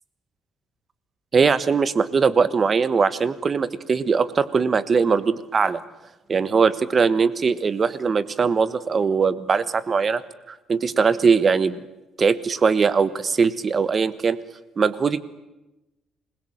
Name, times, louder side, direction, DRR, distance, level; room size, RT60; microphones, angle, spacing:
voice 1, 1.3-5.8 6.3-10.2 10.5-11.8 12.2-14.4 14.8-15.2, right 5 dB, 25° right, 16 dB, 1.3 m, -21 dB
27.0 x 21.5 x 8.9 m, 0.98 s
cardioid pair, 175°, 0 cm